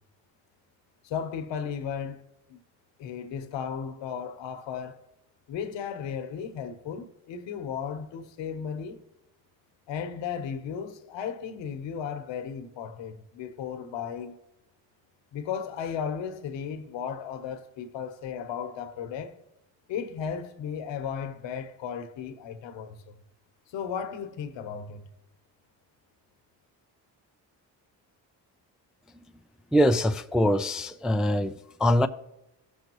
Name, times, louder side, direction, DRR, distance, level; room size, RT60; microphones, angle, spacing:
voice 1, 1.0-2.2 2.5-2.6 3.0-5.0 5.5-9.0 9.9-14.4 15.3-19.3 19.9-23.2 23.7-25.1, left 7 dB, 75° left, 1.1 m, -35 dB
voice 2, 29.7-31.5 31.8-32.1, equal, ahead, 0.3 m, -23 dB
15.5 x 6.4 x 3.0 m
supercardioid pair, 65°, 44 cm